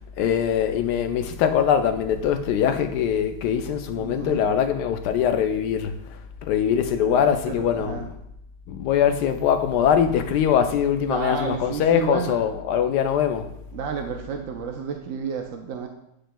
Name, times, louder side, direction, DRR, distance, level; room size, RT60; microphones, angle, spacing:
voice 1, 0.2-5.9 6.4-8.1 8.7-13.5, left 8 dB, 80° left, 1.2 m, -22 dB
voice 2, 3.9-4.4 7.0-8.1 11.0-12.5 13.7-15.9, right 6 dB, 70° right, 0.7 m, -31 dB
8.8 x 5.0 x 2.2 m
omnidirectional pair, 1.8 m